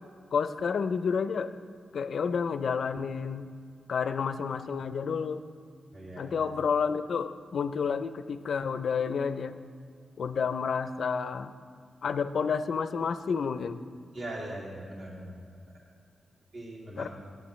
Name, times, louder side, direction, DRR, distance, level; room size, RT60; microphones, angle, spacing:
voice 1, 0.3-1.5 1.9-3.5 3.9-5.4 6.2-9.6 10.2-11.5 12.0-13.8 17.0-17.1, left 6 dB, 65° left, 11 dB, 0.5 m, -30 dB
voice 2, 5.9-6.3 14.1-15.4 15.7-15.8 16.5-17.1, right 1 dB, 60° right, -5 dB, 2.4 m, -40 dB
18.5 x 8.4 x 3.1 m, 2.2 s
wide cardioid pair, 135°, 0 cm